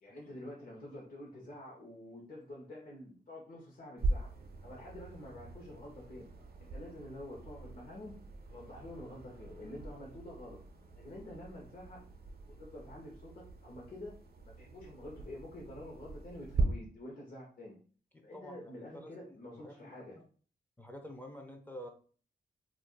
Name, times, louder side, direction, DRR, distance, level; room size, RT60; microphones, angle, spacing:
voice 1, 0.0-4.3 4.6-6.3 6.6-8.2 8.5-10.6 10.9-12.0 12.6-17.7 18.2-20.2, left 1 dB, 55° left, -3 dB, 0.8 m, -48 dB
sound 1, 4.0-16.6, right 3 dB, 60° right, 0.6 m, -41 dB
voice 2, 18.1-20.2 20.8-21.9, equal, 10° left, 3 dB, 0.5 m, -49 dB
2.4 x 2.3 x 3.8 m, 0.43 s
wide cardioid pair, 100°, 17 cm